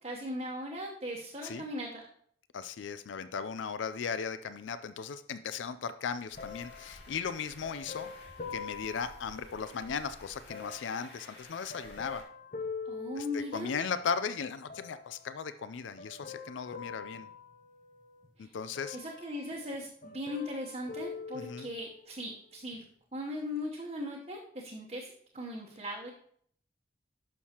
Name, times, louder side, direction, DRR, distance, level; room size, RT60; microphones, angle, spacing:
voice 1, 0.0-2.0 12.8-13.8 18.4-18.5 18.9-22.8 23.1-26.1, left 1 dB, 35° right, -4 dB, 1.0 m, -39 dB
voice 2, 2.5-8.1 8.5-12.2 13.2-17.3 18.4-19.0 21.3-21.7, left 6 dB, 90° left, 12 dB, 0.4 m, -37 dB
sound 1, 6.3-12.2, left 1 dB, 70° left, 2.0 m, -53 dB
sound 2, 6.4-10.0 10.5-14.0 14.7-15.4 16.0-18.3 18.7-19.8 20.0-22.1 22.7-22.8, left 5 dB, 45° left, 0.6 m, -45 dB
11.5 x 6.4 x 2.9 m, 0.63 s
head